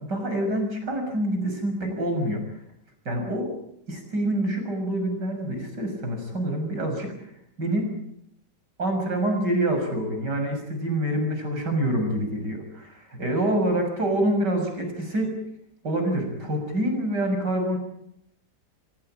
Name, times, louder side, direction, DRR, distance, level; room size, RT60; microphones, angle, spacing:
voice 1, 0.0-2.4 3.1-3.5 3.9-7.1 7.6-7.9 8.8-15.4 15.8-17.8, right 1 dB, 80° right, 4 dB, 7.1 m, -26 dB
25.5 x 17.5 x 8.9 m, 0.74 s
omnidirectional pair, 1.8 m